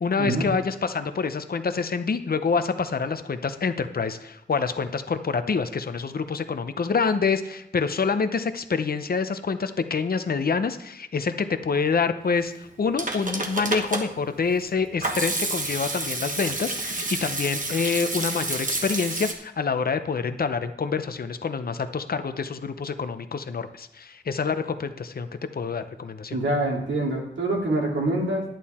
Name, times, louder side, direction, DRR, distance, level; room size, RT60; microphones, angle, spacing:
voice 1, 0.0-25.3 25.5-26.4, left 5 dB, 55° left, 10 dB, 0.7 m, -27 dB
Hands / Sink (filling or washing), 12.7-19.3, right 2 dB, 45° right, 1.3 m, -30 dB
voice 2, 26.3-28.4, right 2 dB, 90° right, -1 dB, 2.5 m, -25 dB
10.5 x 9.1 x 4.3 m, 0.81 s
wide cardioid pair, 105°, 19 cm